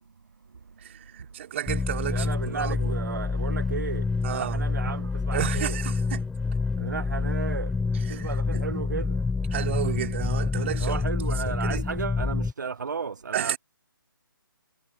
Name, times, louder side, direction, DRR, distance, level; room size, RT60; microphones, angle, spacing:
voice 1, 0.8-2.9 4.2-4.6 5.3-6.3 8.1-8.6 9.5-11.0 11.6-11.8 13.3-13.6, right 11 dB, 35° right, 4.8 m, -32 dB
sound 1, 1.7-12.5, left 4 dB, 5° left, 0.6 m, -28 dB
voice 2, 2.1-5.8 6.8-7.7 8.1-9.2 10.8-13.6, right 5 dB, 55° right, 1.6 m, -34 dB
figure-of-eight pair, 140°, 12 cm